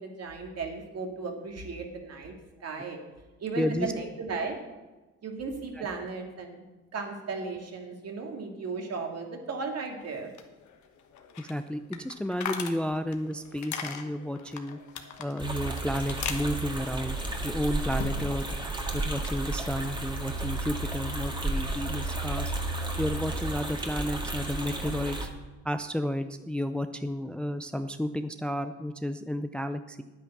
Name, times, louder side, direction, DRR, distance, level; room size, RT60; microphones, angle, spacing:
voice 1, 0.0-2.3 2.6-3.0 3.4-4.6 5.2-6.7 6.9-10.3, right 4 dB, 55° right, 3 dB, 2.2 m, -35 dB
voice 2, 3.6-3.9 5.7-5.9 11.4-14.8 15.2-17.2 17.4-18.5 18.9-22.5 23.0-25.3 25.6-30.0, equal, 5° left, 9 dB, 0.5 m, -32 dB
sound 1, 10.0-18.5 18.8-19.7, left 7 dB, 70° left, 1.3 m, -41 dB
sound 2, 15.4-25.3, right 2 dB, 15° right, 1.8 m, -32 dB
9.7 x 9.1 x 6.0 m, 1.1 s
cardioid pair, 90°, 30 cm